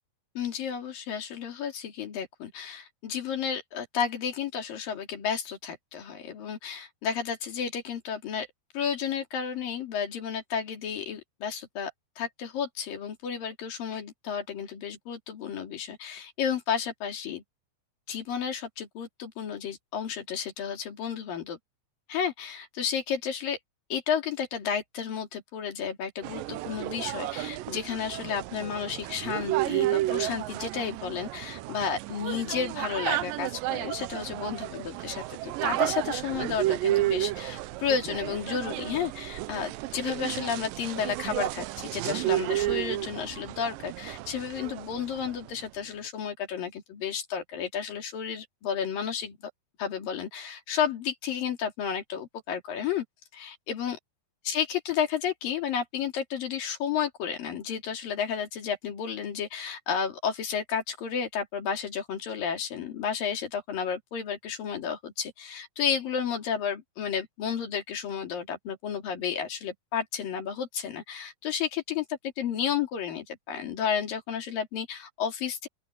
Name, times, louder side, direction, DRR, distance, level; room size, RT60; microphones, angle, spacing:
voice 1, 0.4-8.5 8.7-11.9 12.2-17.4 18.1-21.6 22.1-23.6 23.9-49.4 49.8-53.0 53.3-54.0 54.5-75.7, left 7 dB, 85° left, 4.6 m, -32 dB
sound 1, 26.2-45.5, right 16 dB, 85° right, 2.4 m, -32 dB
open air
omnidirectional pair, 3.9 m